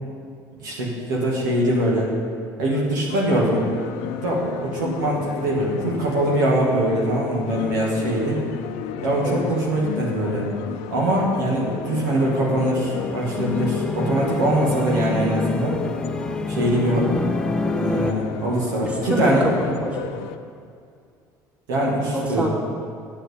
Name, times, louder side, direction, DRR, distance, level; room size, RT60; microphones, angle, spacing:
voice 1, 0.6-2.1 2.6-3.7 4.2-8.4 9.0-10.5 10.9-15.8 16.5-17.1 17.8-19.5 21.7-22.5, right 1 dB, 85° right, -4 dB, 2.4 m, -22 dB
sound 1, 3.1-20.4, left 9 dB, 75° left, 0.6 m, -33 dB
sound 2, 11.6-18.1, left 2 dB, 10° left, 0.6 m, -28 dB
voice 2, 18.8-20.2 22.1-22.5, right 1 dB, 10° right, -3 dB, 2.8 m, -26 dB
9.3 x 6.9 x 8.7 m, 2.3 s
hypercardioid pair, 70°, 10 cm